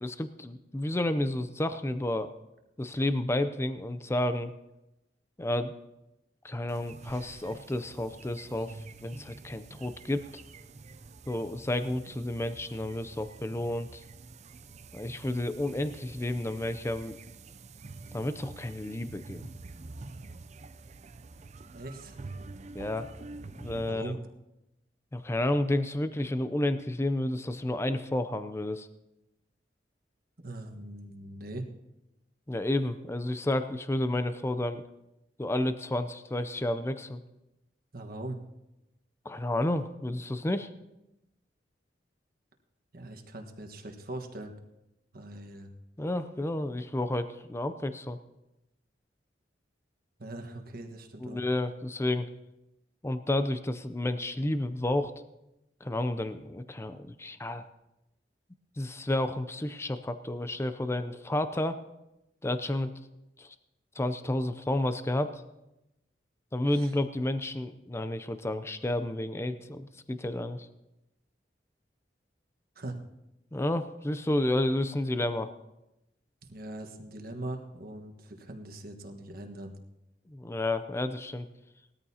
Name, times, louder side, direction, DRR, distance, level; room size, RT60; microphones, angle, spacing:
voice 1, 0.0-2.3 2.8-4.5 5.4-5.7 6.4-10.3 11.3-14.0 14.9-17.2 18.1-19.4 22.7-23.1 23.5-24.1 25.1-28.9 32.5-34.8 35.4-37.2 39.2-40.7 46.0-48.2 51.2-52.3 53.0-55.1 55.8-57.6 58.8-61.8 62.4-62.9 63.4-63.6 63.9-65.4 66.5-70.7 73.5-75.5 80.3-81.5, left 1 dB, 15° left, 11 dB, 0.5 m, -31 dB
sound 1, 6.7-23.9, right 3 dB, 40° right, 0.5 m, -47 dB
voice 2, 21.7-22.2 23.9-24.3 30.4-31.7 37.9-38.4 42.9-44.5 45.1-45.7 50.2-51.4 66.7-66.9 72.7-73.0 76.5-79.8, right 1 dB, 55° right, 4 dB, 1.4 m, -41 dB
19.5 x 14.0 x 2.8 m, 0.92 s
head